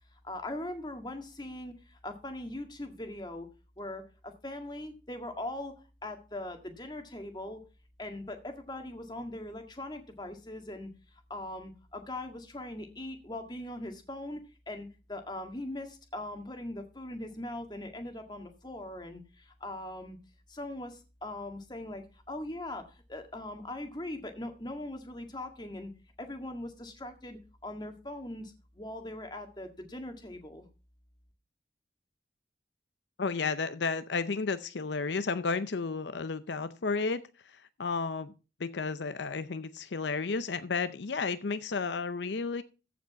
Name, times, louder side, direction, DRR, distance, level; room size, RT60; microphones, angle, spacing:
voice 1, 0.2-3.5 3.8-5.7 6.0-7.6 8.0-10.9 11.3-14.4 14.7-20.2 20.5-25.9 26.2-30.7, left 1 dB, 25° left, 5 dB, 1.8 m, -40 dB
voice 2, 33.2-37.2 37.5-38.3 38.6-42.6, left 4 dB, 75° left, 13 dB, 0.6 m, -32 dB
14.5 x 5.2 x 5.7 m, 0.32 s
head